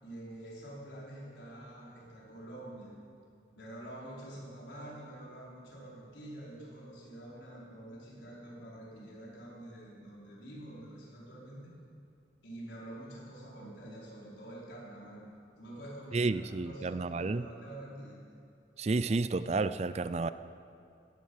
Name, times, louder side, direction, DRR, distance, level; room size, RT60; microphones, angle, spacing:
voice 1, 0.0-3.0 3.5-11.8 12.4-18.3, right 1 dB, 70° left, -5 dB, 4.9 m, -47 dB
voice 2, 16.1-17.4 18.8-20.3, right 3 dB, 35° right, 13 dB, 0.4 m, -31 dB
17.0 x 14.0 x 5.8 m, 2.6 s
head